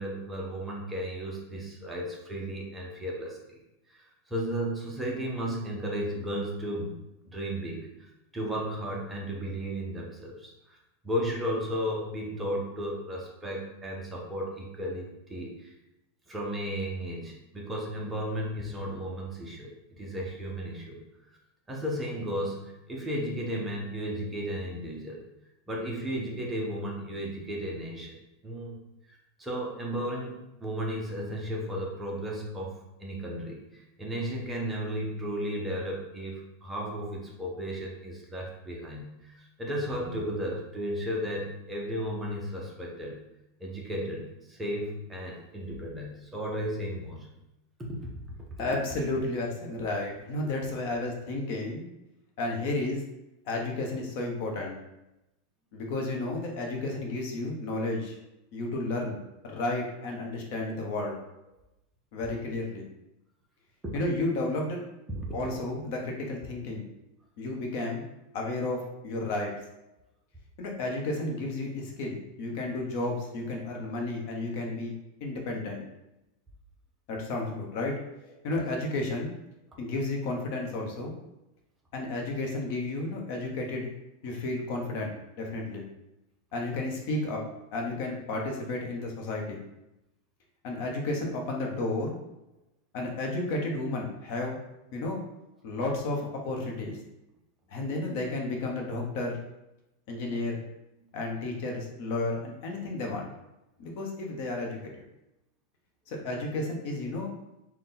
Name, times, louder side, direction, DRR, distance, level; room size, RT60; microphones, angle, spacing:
voice 1, 0.0-3.6 3.9-7.0 7.3-10.8 11.0-15.7 16.3-21.0 21.7-25.2 25.7-28.2 28.4-28.8 29.1-43.2 43.6-47.3 47.8-48.1 63.8-64.0 65.1-65.3 78.5-78.6, equal, 10° right, -2 dB, 0.6 m, -34 dB
voice 2, 48.6-51.9 52.4-53.0 53.5-54.8 55.7-58.2 58.5-59.2 59.4-61.2 62.1-62.8 63.9-64.8 65.3-66.9 67.4-68.0 68.3-69.5 70.6-74.9 75.2-75.8 77.1-77.9 78.4-79.3 79.8-81.2 81.9-83.9 84.2-85.1 85.4-85.9 86.5-87.4 87.7-89.6 90.6-92.2 92.9-94.6 94.9-95.2 95.6-97.0 97.7-99.4 100.1-100.6 101.1-103.3 103.8-105.0 106.1-107.3, left 2 dB, 50° left, 0 dB, 0.8 m, -32 dB
4.1 x 2.2 x 3.8 m, 0.91 s
supercardioid pair, 155°, 0 cm